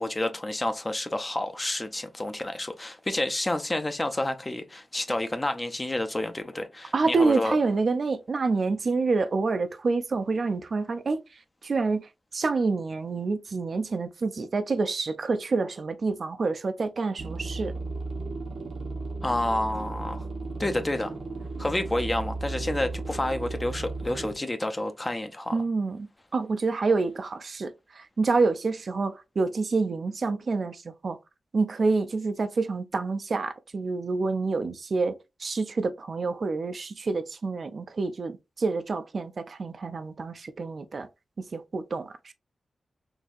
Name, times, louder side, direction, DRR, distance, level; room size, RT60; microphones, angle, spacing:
voice 1, 0.0-7.6 19.2-20.2 20.6-21.2 21.6-25.6, left 1 dB, 20° left, 0.5 m, -29 dB
voice 2, 6.9-11.2 11.6-17.7 25.5-31.2 31.5-41.1 41.5-42.3, right 3 dB, 50° right, 0.4 m, -27 dB
sound 1, 17.2-24.4, right 3 dB, 75° right, 0.7 m, -35 dB
3.9 x 2.7 x 2.4 m
wide cardioid pair, 125°, 0 cm